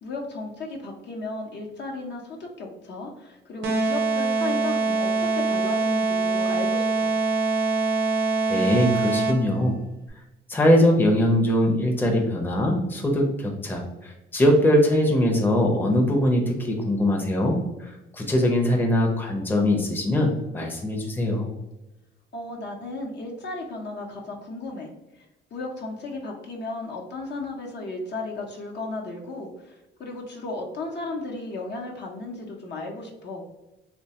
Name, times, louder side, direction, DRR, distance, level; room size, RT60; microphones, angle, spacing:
voice 1, 0.0-7.1 22.3-24.9 25.5-33.4, left 2 dB, 60° left, 0 dB, 0.8 m, -35 dB
sound 1, 3.6-9.6, right 3 dB, 75° right, 0.6 m, -24 dB
voice 2, 8.5-9.7 10.5-21.5, left 1 dB, 10° left, 0 dB, 0.6 m, -22 dB
3.1 x 2.2 x 2.8 m, 0.98 s
cardioid pair, 90°, 20 cm